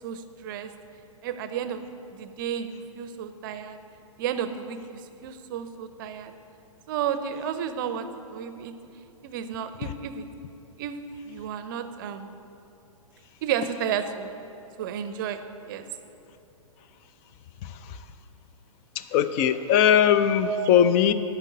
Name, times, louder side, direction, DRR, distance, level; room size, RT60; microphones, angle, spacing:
voice 1, 0.0-0.7 1.2-1.9 2.1-3.8 4.2-6.3 6.9-8.7 9.2-10.3 10.8-11.0 11.3-12.3 13.4-14.3 14.8-15.9 20.4-20.7, right 8 dB, 35° right, 10 dB, 0.6 m, -32 dB
voice 2, 17.6-18.0 19.0-21.1, left 9 dB, 25° left, 12 dB, 0.4 m, -20 dB
9.0 x 5.8 x 8.0 m, 2.8 s
figure-of-eight pair, 115°, 18 cm